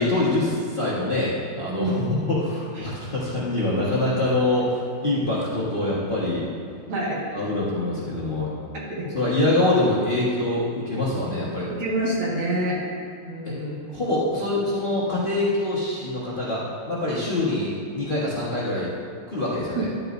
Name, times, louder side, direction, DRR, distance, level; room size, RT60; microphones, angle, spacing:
voice 1, 0.0-6.5 7.3-8.5 9.1-11.7 13.4-13.5 13.9-18.9 19.3-19.9, left 2 dB, 30° left, -8 dB, 1.2 m, -24 dB
voice 2, 6.9-7.2 8.7-9.1 11.7-12.8 13.2-13.8 19.7-19.9, right 1 dB, 65° right, -5 dB, 2.4 m, -27 dB
11.5 x 8.7 x 2.6 m, 2.3 s
omnidirectional pair, 2.4 m